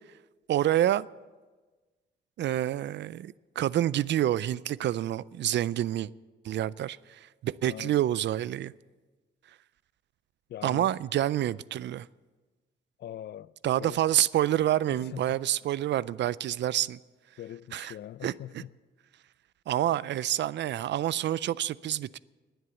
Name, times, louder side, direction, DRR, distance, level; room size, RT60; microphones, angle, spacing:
voice 1, 0.5-1.1 2.4-6.1 6.4-8.7 10.6-12.1 13.6-17.0 17.7-17.9 18.2-18.3 19.7-22.2, right 12 dB, 65° right, 0.4 m, -28 dB
voice 2, 7.7-8.0 10.5-11.0 13.0-13.5 13.8-14.0 14.9-15.4 17.4-18.7, left 11 dB, 60° left, 0.4 m, -42 dB
20.5 x 8.0 x 7.0 m
cardioid pair, 125°, 20 cm